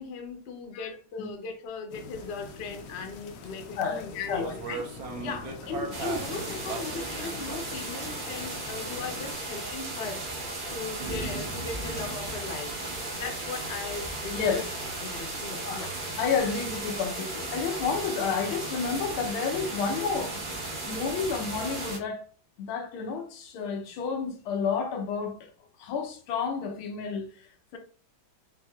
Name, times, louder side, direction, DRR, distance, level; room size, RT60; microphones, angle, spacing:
voice 1, 0.0-4.8 5.2-10.2 10.7-12.7 13.1-14.7 15.0-15.9, left 4 dB, 55° left, 0.7 m, -38 dB
sound 1, 1.9-9.4, left 5 dB, 75° left, 1.1 m, -44 dB
sound 2, 2.2-7.8, right 4 dB, 75° right, 1.6 m, -40 dB
voice 2, 3.8-4.5 14.3-14.6 15.7-15.8 16.2-20.4 20.9-22.2 22.6-25.5 25.8-27.8, left 5 dB, 90° left, 1.6 m, -30 dB
sound 3, 5.9-22.0, right 2 dB, 60° right, 0.5 m, -35 dB
5.7 x 2.7 x 2.3 m
omnidirectional pair, 2.2 m